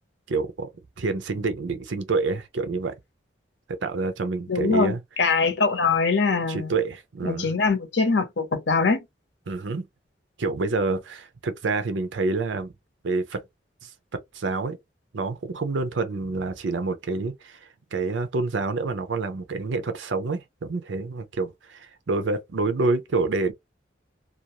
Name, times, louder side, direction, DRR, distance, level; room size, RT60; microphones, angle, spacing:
voice 1, 0.3-0.7 1.0-2.9 3.7-5.0 6.5-7.5 9.5-9.8 10.4-12.7 13.0-13.4 13.8-14.8 15.1-17.6 17.9-23.5, right 3 dB, 80° right, 0.6 m, -27 dB
voice 2, 4.5-6.7 7.2-9.0, left 4 dB, 75° left, 0.8 m, -23 dB
2.5 x 2.3 x 2.9 m
head